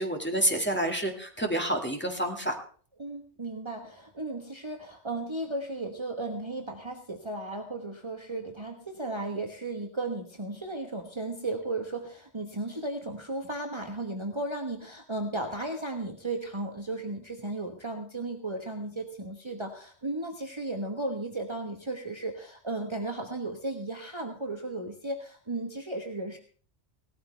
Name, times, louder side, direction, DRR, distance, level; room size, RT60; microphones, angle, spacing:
voice 1, 0.0-2.5, right 1 dB, 10° left, 1 dB, 1.9 m, -28 dB
voice 2, 3.0-26.4, right 2 dB, 25° right, 3 dB, 1.3 m, -35 dB
18.0 x 13.5 x 3.4 m, 0.43 s
omnidirectional pair, 1.2 m